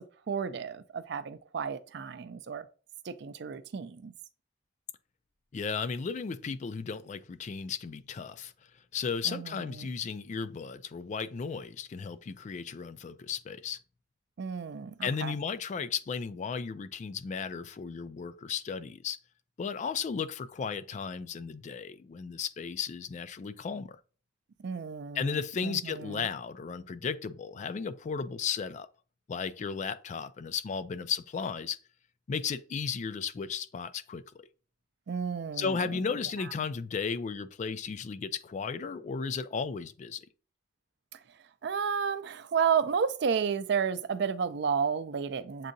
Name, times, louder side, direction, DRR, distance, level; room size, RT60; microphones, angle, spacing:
voice 1, 0.0-2.7 3.0-4.1 9.2-9.9 14.4-15.3 24.6-26.3 35.1-35.8 41.1-41.2 41.6-45.7, right 6 dB, 60° right, 0.4 m, -32 dB
voice 2, 5.5-8.5 8.9-13.8 15.0-19.2 19.6-24.0 25.1-28.9 29.3-31.8 32.3-34.5 35.6-40.3, left 6 dB, 40° left, 0.3 m, -35 dB
7.3 x 2.7 x 2.6 m
head